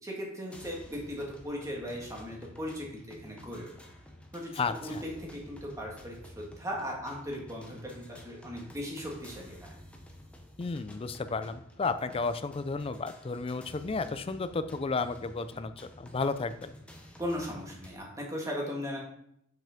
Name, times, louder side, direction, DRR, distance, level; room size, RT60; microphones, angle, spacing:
voice 1, 0.0-3.7 4.3-4.5 4.8-9.6 17.2-19.0, equal, 15° right, -2 dB, 1.7 m, -38 dB
sound 1, 0.5-18.0, equal, 5° left, 0.8 m, -51 dB
voice 2, 4.6-5.0 10.6-15.7 16.0-16.7, left 4 dB, 25° left, 11 dB, 0.4 m, -32 dB
5.8 x 5.5 x 5.1 m, 0.73 s
head